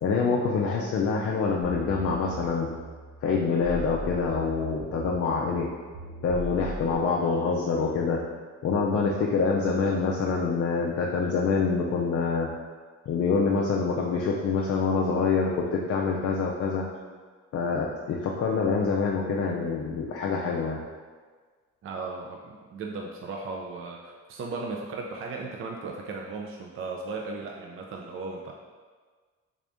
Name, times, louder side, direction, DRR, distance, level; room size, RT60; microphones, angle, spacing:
voice 1, 0.0-2.7 3.2-5.7 6.2-8.3 8.6-12.5 13.1-16.9 17.5-20.8, left 4 dB, 50° left, -1 dB, 0.5 m, -26 dB
sound 1, 1.6-6.9, right 1 dB, 65° right, 0.9 m, -39 dB
voice 2, 21.8-28.5, right 3 dB, 45° right, 0 dB, 0.4 m, -36 dB
3.6 x 2.5 x 3.4 m, 1.5 s
cardioid pair, 90°, 30 cm